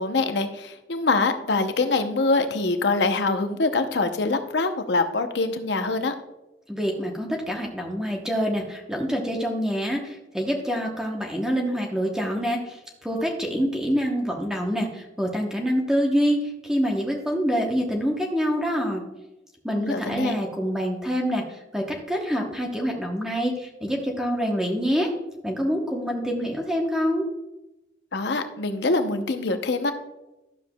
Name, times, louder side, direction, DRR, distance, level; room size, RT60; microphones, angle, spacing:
voice 1, 0.0-6.1 19.7-20.3 28.1-29.9, left 3 dB, 70° left, 8 dB, 0.7 m, -24 dB
voice 2, 6.7-19.0 19.6-25.1 25.4-27.2, equal, 5° right, 0 dB, 0.9 m, -26 dB
11.5 x 7.2 x 2.3 m, 0.97 s
head